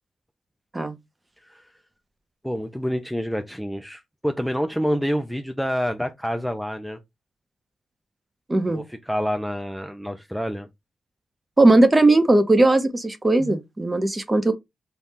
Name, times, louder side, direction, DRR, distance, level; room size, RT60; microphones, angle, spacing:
voice 1, 1.4-1.7 2.4-7.0 8.7-10.7, equal, ahead, 0.4 m, -27 dB
voice 2, 8.5-8.8 11.6-14.5, right 2 dB, 20° right, 0.8 m, -18 dB
3.6 x 2.3 x 4.1 m
cardioid pair, 100°, 0 cm